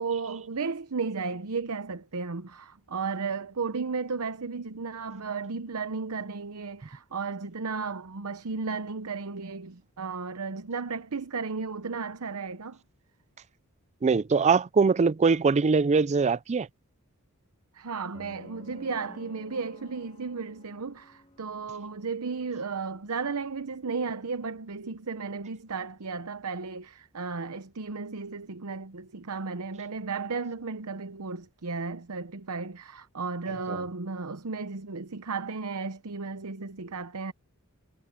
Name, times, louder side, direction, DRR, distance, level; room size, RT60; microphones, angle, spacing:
voice 1, 0.0-12.8 17.7-37.3, right 4 dB, 80° right, 0.9 m, -34 dB
voice 2, 14.0-16.7 33.7-33.8, right 4 dB, 30° right, 0.4 m, -22 dB
sound 1, 18.1-22.3, left 1 dB, 30° left, 2.6 m, -52 dB
head